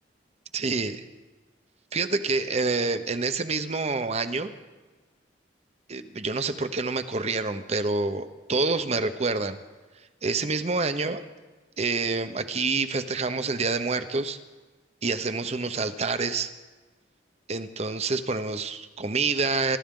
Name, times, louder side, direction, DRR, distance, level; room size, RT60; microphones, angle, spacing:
voice 1, 0.5-1.0 1.9-4.5 5.9-9.6 10.2-11.2 11.8-14.4 15.0-16.5 17.5-19.8, right 3 dB, 35° right, 10 dB, 0.8 m, -27 dB
26.0 x 13.0 x 3.8 m, 1.3 s
head